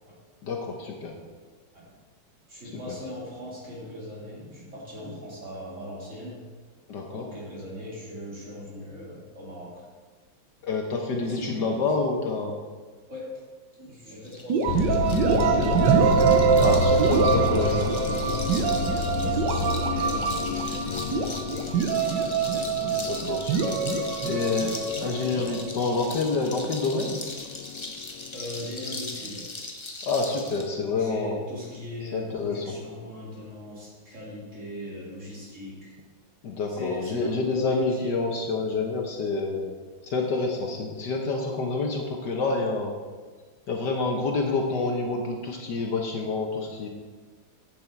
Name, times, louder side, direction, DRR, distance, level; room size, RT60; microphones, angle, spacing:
voice 1, 0.4-1.1 2.9-3.0 6.9-7.3 10.6-12.5 16.6-17.8 22.7-27.2 30.0-31.4 32.1-32.6 36.4-39.7 40.0-42.9 43.7-46.9, left 3 dB, 60° left, 2 dB, 1.5 m, -28 dB
voice 2, 2.5-6.4 7.1-9.8 11.2-11.9 13.1-13.3 13.7-16.7 17.2-18.7 19.1-21.2 21.5-22.8 25.2-25.6 28.3-29.5 30.8-36.0 36.7-38.9, left 1 dB, 35° right, -5 dB, 3.3 m, -40 dB
sound 1, 14.2-30.7, left 2 dB, 25° left, 0.6 m, -39 dB
sound 2, 14.5-26.2, right 6 dB, 65° right, 1.5 m, -24 dB
sound 3, 14.7-28.7, left 6 dB, 80° left, 1.4 m, -31 dB
11.0 x 8.2 x 4.5 m, 1.4 s
omnidirectional pair, 2.2 m